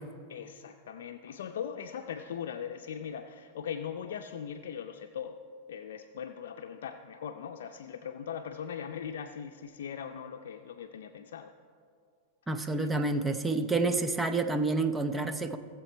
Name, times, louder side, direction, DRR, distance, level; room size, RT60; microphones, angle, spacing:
voice 1, 0.3-5.4 5.7-11.5 12.6-13.0 14.2-14.5, left 8 dB, 85° left, 5 dB, 0.5 m, -40 dB
voice 2, 12.5-15.6, right 3 dB, 10° right, 8 dB, 0.7 m, -29 dB
16.5 x 7.5 x 4.5 m, 2.2 s
supercardioid pair, 130°, 0 cm